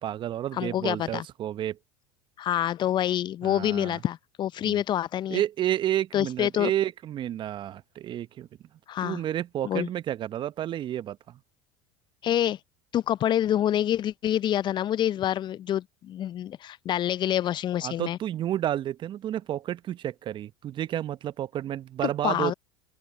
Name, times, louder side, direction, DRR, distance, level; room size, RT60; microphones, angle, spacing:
voice 1, 0.0-1.8 3.4-4.0 4.6-4.8 5.3-8.5 9.0-11.4 17.8-22.5, right 12 dB, 40° right, 0.9 m, -30 dB
voice 2, 0.6-1.2 2.4-5.4 6.1-6.7 8.9-9.2 9.6-9.9 12.2-12.6 12.9-18.2 22.2-22.5, left 11 dB, 40° left, 0.6 m, -27 dB
open air
hypercardioid pair, 80°, 12 cm